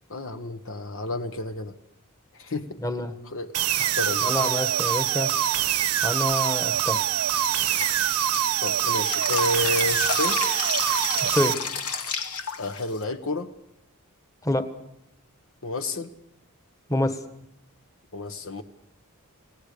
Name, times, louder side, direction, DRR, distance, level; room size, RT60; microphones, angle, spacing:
voice 1, 0.1-1.7 2.3-2.8 3.3-4.5 8.6-10.4 12.6-13.5 15.6-16.1 18.1-18.6, left 2 dB, 60° left, 8 dB, 1.3 m, -31 dB
voice 2, 2.8-3.1 3.8-3.9 4.2-5.3 6.0-7.0 11.2-11.6 14.4-14.7 16.9-17.2, left 1 dB, 15° left, 8 dB, 1.5 m, -27 dB
sound 1, 3.5-11.5, right 10 dB, 85° right, 1.2 m, -24 dB
Drip, 7.4-13.0, left 5 dB, 90° left, 2.4 m, -31 dB
29.5 x 18.0 x 6.8 m, 0.78 s
head